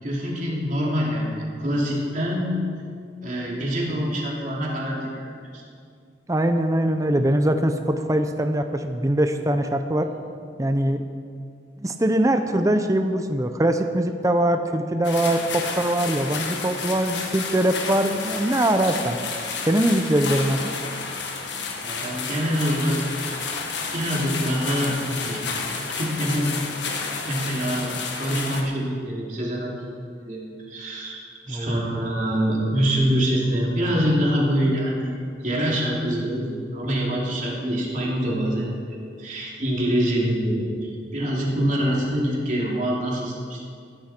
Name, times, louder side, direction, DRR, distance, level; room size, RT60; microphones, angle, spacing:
voice 1, 0.0-2.5 3.2-5.3 5.5-5.6 21.8-23.0 23.3-23.5 23.9-25.4 25.9-26.6 27.3-27.9 28.2-30.0 30.3-35.2 35.4-40.7 41.1-43.6, equal, 45° right, -3 dB, 3.1 m, -25 dB
voice 2, 6.3-10.1 10.6-11.0 11.8-19.2 19.6-20.7 31.5-32.1, right 1 dB, 20° right, 7 dB, 0.6 m, -22 dB
sound 1, 15.0-28.6, left 4 dB, 70° left, 1.5 m, -31 dB
14.5 x 14.0 x 4.5 m, 2.3 s
head